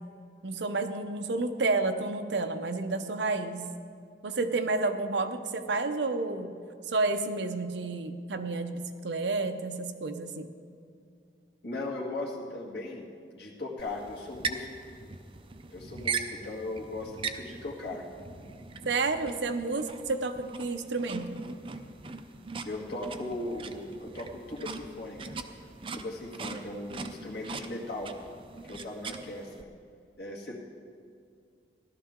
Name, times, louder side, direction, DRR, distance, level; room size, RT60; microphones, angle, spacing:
voice 1, 0.4-3.7 4.2-6.5 6.9-10.5 18.8-21.4, right 3 dB, 80° right, 8 dB, 0.8 m, -30 dB
voice 2, 11.6-13.0 13.3-14.9 15.7-18.0 22.6-25.4 25.9-28.1 28.6-29.7 30.2-30.6, left 2 dB, 65° left, -3 dB, 2.0 m, -38 dB
sound 1, 13.8-29.6, right 4 dB, 30° right, 0.5 m, -40 dB
16.0 x 12.5 x 3.7 m, 2.2 s
head